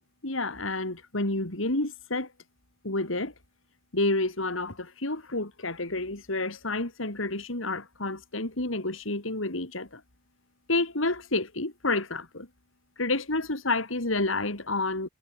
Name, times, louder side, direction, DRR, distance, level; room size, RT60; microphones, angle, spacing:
voice 1, 0.2-2.3 2.8-3.3 3.9-10.0 10.7-12.5 13.0-15.1, left 2 dB, 80° left, 4.0 m, -29 dB
head